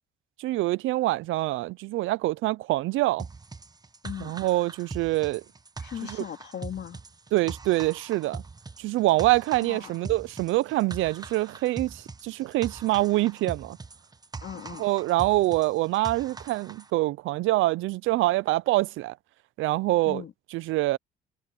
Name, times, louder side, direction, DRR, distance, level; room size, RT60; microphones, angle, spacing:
voice 1, 0.4-3.3 4.2-5.4 6.0-6.2 7.3-8.4 8.8-13.8 14.8-19.2 19.6-20.2 20.5-21.0, right 18 dB, 90° right, 0.5 m, -25 dB
sound 1, 3.2-16.9, right 4 dB, 20° right, 0.9 m, -42 dB
voice 2, 4.0-4.4 5.8-7.0 9.6-9.9 14.4-14.8 20.0-20.3, left 9 dB, 60° left, 2.2 m, -38 dB
cardioid pair, 90°, 20 cm